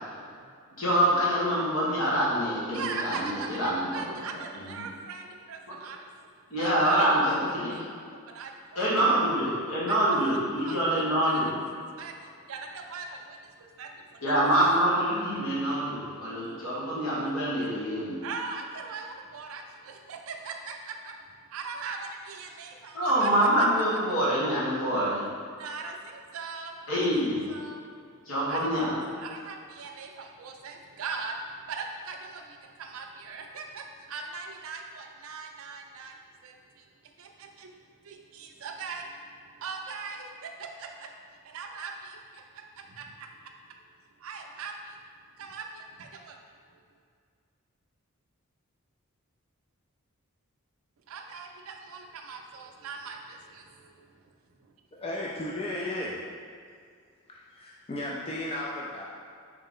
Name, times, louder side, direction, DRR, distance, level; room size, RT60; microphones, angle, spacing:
voice 1, 0.1-0.5 2.7-7.1 7.6-7.8 8.3-8.9 9.9-10.4 10.6-11.5 11.8-14.5 15.4-15.5 16.2-16.9 18.1-21.1 21.5-23.3 25.6-27.0 27.5-27.8 28.5-28.7 29.1-36.2 36.4-36.9 37.2-37.7 38.0-39.1 39.5-41.1 41.4-42.4 42.8-43.3 44.2-45.0 45.4-46.4 51.1-54.2, right 4 dB, 70° right, 3 dB, 0.4 m, -40 dB
voice 2, 0.8-4.0 4.5-4.8 6.5-7.7 8.7-11.5 14.2-18.2 22.9-25.2 26.9-27.4 28.3-29.0, right 1 dB, 70° left, -8 dB, 1.4 m, -25 dB
voice 3, 54.9-56.2 57.3-59.0, left 1 dB, 25° left, -4 dB, 0.3 m, -34 dB
3.8 x 3.2 x 3.7 m, 2.2 s
head